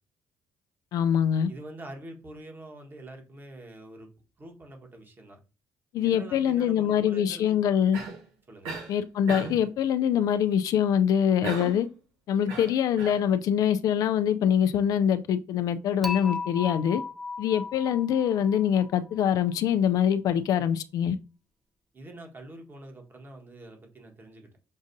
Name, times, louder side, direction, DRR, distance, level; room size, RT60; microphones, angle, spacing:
voice 1, 0.9-1.5 5.9-8.0 8.9-11.9 12.3-17.0 17.4-21.2, left 9 dB, 70° left, 0.4 m, -24 dB
voice 2, 1.5-4.1 4.4-5.4 6.0-7.6 8.5-8.7 21.9-24.6, right 1 dB, 30° right, 1.4 m, -45 dB
Cough, 7.9-8.3 8.6-8.9 9.3-9.7 11.4-11.9 12.5-13.2, right 4 dB, 85° right, 1.4 m, -36 dB
Dishes pots and pans / Chink clink, 16.0-19.2, left 4 dB, ahead, 0.5 m, -36 dB
6.2 x 2.5 x 2.6 m
supercardioid pair, 75°, 6 cm